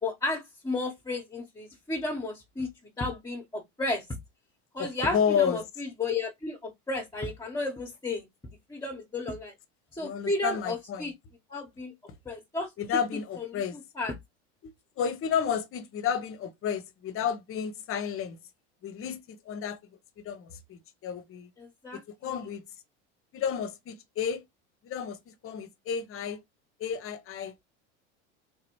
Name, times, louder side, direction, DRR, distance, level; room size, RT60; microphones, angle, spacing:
voice 1, 0.0-2.7 3.0-4.1 4.7-8.2 8.7-9.5 9.9-11.1 11.5-11.9 12.2-13.0 13.4-13.6 14.0-14.1 21.6-22.3, left 2 dB, 10° left, 1.1 m, -33 dB
voice 2, 4.8-5.6 10.0-11.1 12.8-13.8 14.6-14.7 15.0-18.4 18.8-19.8 20.2-21.5 21.9-22.6 23.3-24.4 24.8-26.4 26.8-27.5, left 7 dB, 35° left, 0.9 m, -31 dB
3.4 x 2.9 x 3.1 m
supercardioid pair, 105°, 36 cm